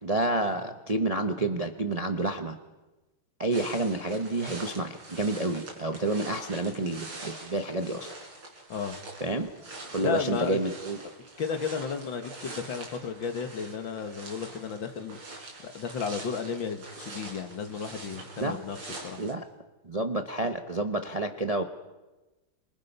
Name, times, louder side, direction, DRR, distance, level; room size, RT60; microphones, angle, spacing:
voice 1, 0.0-2.6 3.4-8.1 9.2-9.5 9.9-11.0 18.4-18.6 19.2-19.4 19.8-21.6, right 2 dB, 30° right, 6 dB, 0.7 m, -29 dB
sound 1, 3.5-19.3, right 2 dB, 80° right, 5.2 m, -44 dB
voice 2, 10.0-10.6 11.4-15.2 15.6-18.8 19.0-19.3, left 6 dB, 65° left, 7 dB, 2.3 m, -33 dB
28.0 x 26.5 x 5.6 m, 1.2 s
omnidirectional pair, 2.3 m